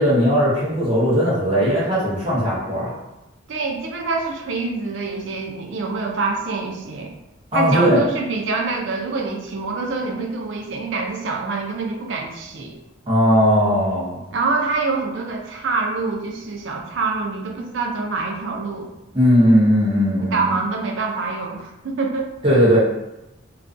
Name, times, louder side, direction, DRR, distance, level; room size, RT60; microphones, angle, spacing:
voice 1, 0.0-2.9 7.5-8.0 13.1-14.2 19.1-20.6 22.4-22.8, equal, 25° right, -9 dB, 0.7 m, -18 dB
voice 2, 3.5-7.1 7.5-12.8 14.3-18.9 20.2-22.3, right 3 dB, 65° right, 2 dB, 0.4 m, -25 dB
2.4 x 2.2 x 2.5 m, 0.93 s
head